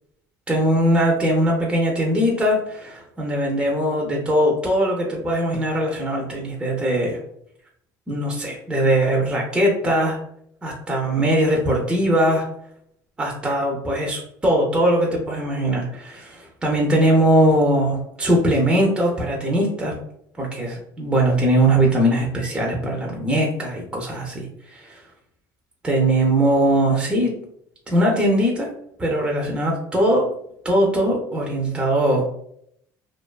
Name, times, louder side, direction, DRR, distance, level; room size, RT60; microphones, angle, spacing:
voice 1, 0.5-7.2 8.1-10.2 10.6-12.5 13.2-19.9 20.4-25.0 25.8-27.3 27.9-28.7 29.0-30.3 30.6-32.2, right 1 dB, 10° right, -1 dB, 0.4 m, -20 dB
2.5 x 2.2 x 2.2 m, 0.71 s
cardioid pair, 135°, 8 cm